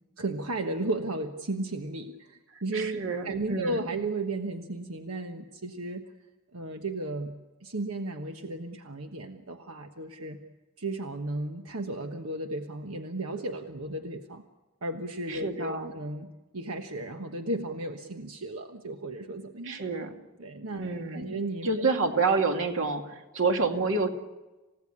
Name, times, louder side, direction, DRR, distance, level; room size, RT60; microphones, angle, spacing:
voice 1, 0.2-6.0 6.5-10.4 10.8-14.4 14.8-16.3 16.5-19.8 20.4-21.9, right 2 dB, 85° right, 5 dB, 1.3 m, -34 dB
voice 2, 2.7-3.8 15.3-15.9 19.6-20.1 20.8-21.3 21.6-24.1, right 4 dB, 65° right, 4 dB, 2.5 m, -28 dB
28.5 x 16.5 x 8.7 m, 1.1 s
head